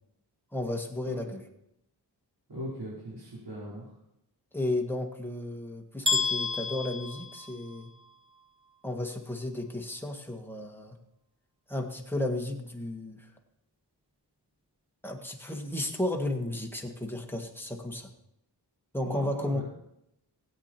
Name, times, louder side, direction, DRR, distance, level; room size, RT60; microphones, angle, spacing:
voice 1, 0.5-1.4 4.5-7.9 8.8-11.0 11.7-13.3 15.0-18.1 18.9-19.6, left 1 dB, 5° left, 2 dB, 1.7 m, -33 dB
voice 2, 1.0-1.3 2.5-3.9 19.0-19.6, equal, 70° right, -9 dB, 4.8 m, -39 dB
sound 1, 6.0-8.0, left 4 dB, 10° right, 0.9 m, -30 dB
17.5 x 8.5 x 4.5 m, 0.81 s
wide cardioid pair, 95°, 42 cm